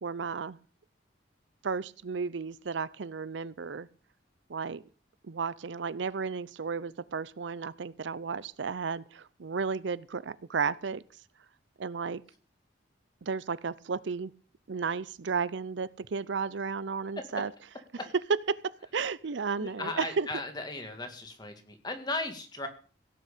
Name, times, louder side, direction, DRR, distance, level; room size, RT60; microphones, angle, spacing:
voice 1, 0.0-0.6 1.6-3.9 4.5-4.8 5.2-11.0 11.8-12.2 13.2-14.3 14.7-17.5 18.5-20.3, right 5 dB, 75° right, 0.6 m, -33 dB
voice 2, 19.6-22.7, left 2 dB, 20° left, 2.2 m, -36 dB
16.5 x 6.3 x 8.3 m
head